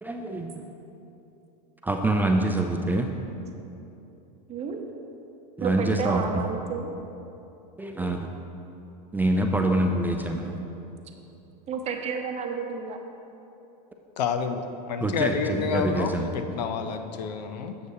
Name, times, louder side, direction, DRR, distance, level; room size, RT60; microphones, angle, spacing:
voice 1, 0.0-0.7 1.8-3.1 5.6-6.5 7.8-8.3 9.1-10.6 15.0-16.3, right 1 dB, 10° right, 3 dB, 0.3 m, -25 dB
voice 2, 4.5-4.8 5.6-6.9 11.7-13.0, right 6 dB, 30° right, 3 dB, 0.7 m, -31 dB
voice 3, 14.2-17.8, left 6 dB, 85° left, 8 dB, 0.5 m, -29 dB
7.9 x 6.7 x 2.7 m, 3.0 s
hypercardioid pair, 110°, 21 cm